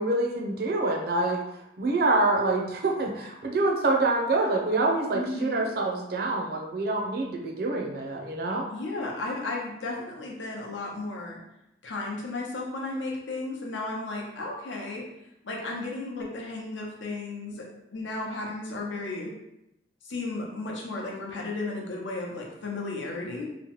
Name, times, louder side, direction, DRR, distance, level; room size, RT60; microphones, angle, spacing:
voice 1, 0.0-1.4 1.8-8.7, right 2 dB, 55° right, 1 dB, 0.4 m, -26 dB
voice 2, 5.1-5.7 8.7-11.4 11.8-15.0 15.4-17.6 17.9-19.3 20.0-23.4, left 2 dB, 90° left, -1 dB, 0.7 m, -34 dB
2.9 x 2.1 x 2.9 m, 0.85 s
head